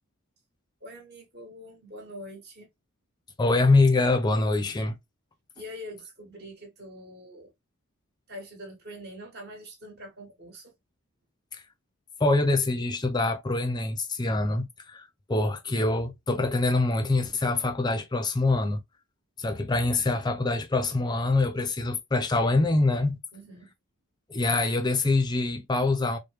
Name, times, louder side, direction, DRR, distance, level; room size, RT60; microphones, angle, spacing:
voice 1, 0.8-2.7 5.5-7.5 8.3-10.7 23.3-23.7, equal, 45° right, 1.7 m, -44 dB
voice 2, 3.4-5.0 11.5-11.6 12.2-18.8 19.4-23.2 24.3-26.2, left 2 dB, 20° left, 0.5 m, -25 dB
4.8 x 2.2 x 3.0 m
head